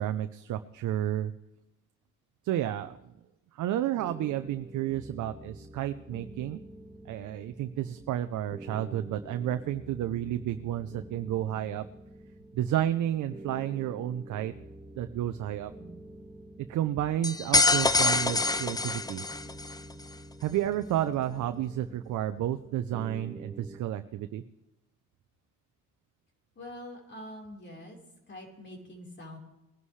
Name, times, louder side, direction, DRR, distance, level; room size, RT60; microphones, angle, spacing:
voice 1, 0.0-1.3 2.4-3.0 3.5-6.6 7.1-11.9 12.5-14.5 15.0-15.7 16.6-19.2 20.4-24.4, right 12 dB, 75° right, 9 dB, 0.7 m, -31 dB
sound 1, 4.0-23.8, right 1 dB, 5° right, 1.7 m, -48 dB
sound 2, 17.2-19.8, left 3 dB, 15° left, 0.5 m, -25 dB
voice 2, 26.5-28.0 28.3-29.4, left 1 dB, 40° left, 0 dB, 4.4 m, -45 dB
20.5 x 11.0 x 3.3 m, 0.94 s
cardioid pair, 90°, 30 cm